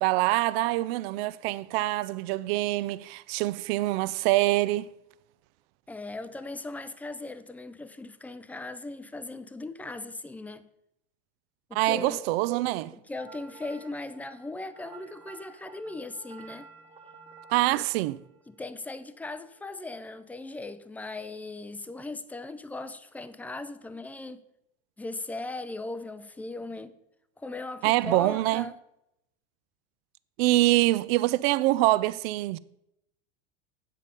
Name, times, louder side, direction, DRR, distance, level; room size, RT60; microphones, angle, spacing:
voice 1, 0.0-4.9 11.7-12.9 17.5-18.2 27.8-28.7 30.4-32.6, right 18 dB, 70° right, 0.4 m, -25 dB
voice 2, 5.9-10.7 11.7-12.3 13.1-16.7 17.7-17.8 18.5-24.4 25.0-26.9 27.4-28.7, left 2 dB, 5° left, 0.4 m, -38 dB
sound 1, 13.2-19.4, right 4 dB, 20° right, 1.1 m, -52 dB
8.3 x 7.5 x 5.2 m
supercardioid pair, 130°, 32 cm